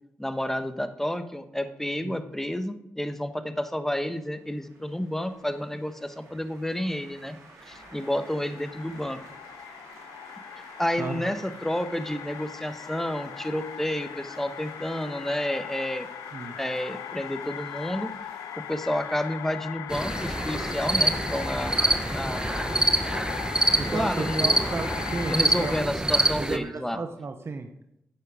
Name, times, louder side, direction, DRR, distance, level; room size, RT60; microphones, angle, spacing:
voice 1, 0.2-7.4 7.7-9.2 10.8-16.1 16.6-18.1 18.7-21.8 22.1-22.5 23.8-24.6 25.3-27.0, left 1 dB, 5° left, 9 dB, 1.3 m, -30 dB
sound 1, 3.8-20.5, right 2 dB, 80° right, 3.2 m, -51 dB
sound 2, 7.7-25.8, left 10 dB, 90° left, 0.4 m, -39 dB
voice 2, 11.0-11.3 16.3-16.6 23.8-25.7 26.4-27.7, right 4 dB, 50° right, 6 dB, 1.0 m, -33 dB
sound 3, 19.9-26.6, right 1 dB, 15° right, 1.0 m, -26 dB
10.0 x 7.6 x 5.0 m, 0.79 s
supercardioid pair, 45°, 5 cm